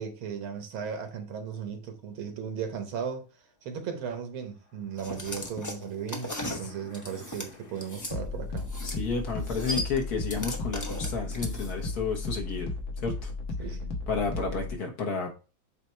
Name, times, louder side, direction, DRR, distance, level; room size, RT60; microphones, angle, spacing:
voice 1, 0.0-3.3 3.6-8.7 13.6-13.9, right 7 dB, 80° right, 1.9 m, -36 dB
sound 1, 5.0-8.1 8.6-9.0 9.3-11.9, left 1 dB, 30° left, 0.3 m, -37 dB
sound 2, 6.1-14.7, left 3 dB, 75° left, 2.0 m, -35 dB
voice 2, 8.8-12.7 13.0-13.3 14.1-15.3, left 4 dB, 55° left, 1.6 m, -31 dB
8.2 x 3.0 x 4.4 m
omnidirectional pair, 2.2 m